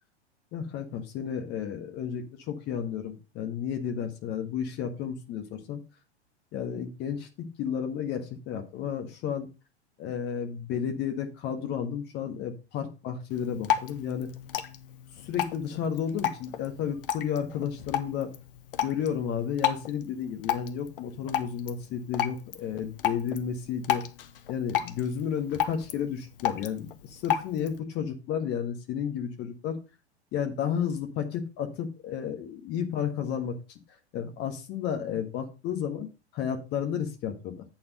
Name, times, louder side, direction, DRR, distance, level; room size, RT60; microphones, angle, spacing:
voice 1, 0.5-5.8 6.5-9.5 10.0-14.3 15.2-18.3 18.8-24.0 24.5-29.8 30.3-33.6 34.1-36.1 36.3-37.6, left 8 dB, 30° left, 6 dB, 1.6 m, -32 dB
Drip, 13.3-27.8, left 10 dB, 55° left, 0.9 m, -33 dB
8.5 x 4.6 x 5.3 m, 0.30 s
figure-of-eight pair, 100°, 33 cm